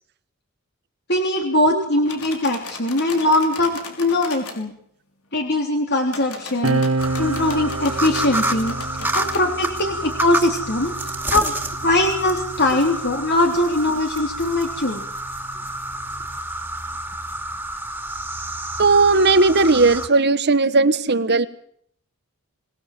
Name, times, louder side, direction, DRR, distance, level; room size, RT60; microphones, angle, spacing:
voice 1, 1.1-4.7 5.3-6.8 7.2-8.7 9.1-11.5 11.8-15.0, left 1 dB, 50° left, 3 dB, 3.5 m, -21 dB
sound 1, 2.1-4.6 6.1-9.5, left 4 dB, 85° left, 6.1 m, -37 dB
sound 2, 6.6-13.6 14.5-16.4, right 3 dB, 70° right, 2.1 m, -30 dB
sound 3, 7.0-20.1, right 1 dB, 10° right, 2.9 m, -29 dB
voice 2, 18.8-21.5, right 3 dB, 50° right, 13 dB, 1.5 m, -16 dB
26.5 x 19.5 x 7.6 m, 0.64 s
head